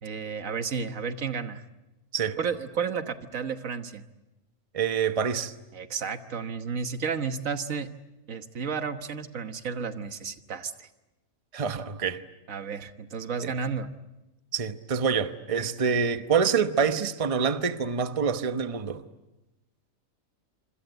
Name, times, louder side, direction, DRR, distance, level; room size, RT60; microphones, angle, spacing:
voice 1, 0.0-1.6 2.4-4.1 5.7-7.9 8.3-10.9 12.5-13.9, right 6 dB, 70° right, 1.6 m, -32 dB
voice 2, 4.7-5.5 11.5-12.2 13.4-13.5 14.5-19.0, right 6 dB, 30° right, 1.0 m, -26 dB
26.0 x 26.0 x 8.0 m
omnidirectional pair, 1.4 m